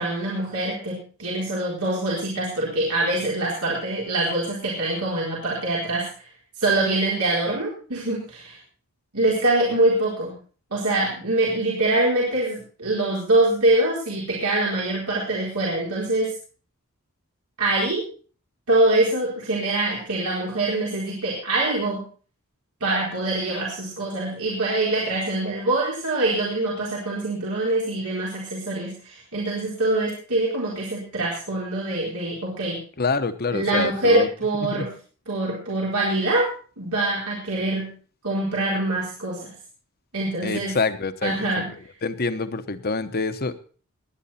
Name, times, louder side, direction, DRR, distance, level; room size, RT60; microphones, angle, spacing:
voice 1, 0.0-6.2 6.6-8.6 9.1-10.4 10.7-16.3 17.6-18.0 18.7-22.0 22.8-32.8 33.5-34.9 35.3-36.5 36.8-37.9 38.2-39.5 40.1-40.8 41.2-41.7, right 2 dB, 85° right, -5 dB, 4.2 m, -24 dB
voice 2, 33.0-34.3 34.6-34.9 40.4-41.5 42.0-43.6, left 4 dB, 45° left, 11 dB, 1.0 m, -26 dB
20.0 x 9.8 x 4.3 m, 0.40 s
head